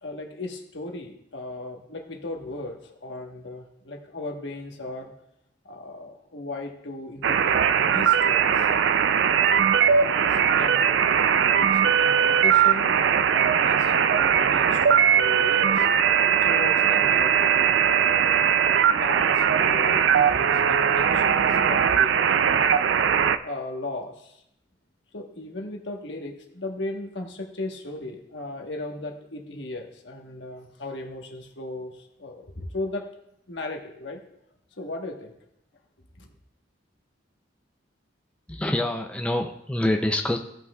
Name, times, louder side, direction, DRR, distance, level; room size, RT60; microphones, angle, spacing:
voice 1, 0.0-5.1 5.6-8.7 9.8-11.2 11.6-15.9 16.3-18.4 19.0-22.8 23.4-24.4 25.1-33.1 33.5-34.2 34.8-35.3 36.2-36.3, left 2 dB, 70° left, 2 dB, 1.2 m, -37 dB
sound 1, 7.2-23.4, right 8 dB, 70° right, 0.4 m, -20 dB
voice 2, 38.5-40.4, left 1 dB, 5° left, 4 dB, 0.4 m, -26 dB
16.0 x 5.8 x 2.3 m, 0.78 s
head